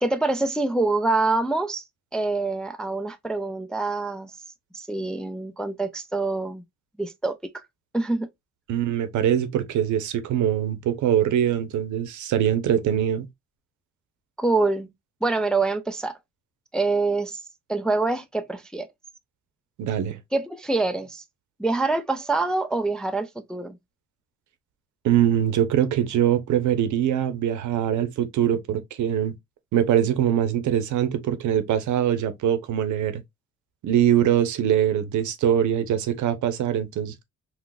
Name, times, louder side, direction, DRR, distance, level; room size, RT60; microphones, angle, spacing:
voice 1, 0.0-1.8 2.1-4.3 4.7-6.6 7.0-7.6 7.9-8.3 14.4-14.9 15.2-16.2 16.7-17.4 17.7-18.9 20.3-21.2 21.6-23.8, right 3 dB, 5° left, 0.3 m, -25 dB
voice 2, 8.7-13.3 19.8-20.2 25.0-29.3 29.7-33.2 33.8-37.1, right 10 dB, 75° right, 0.7 m, -23 dB
3.8 x 2.4 x 2.2 m
cardioid pair, 90°, 30 cm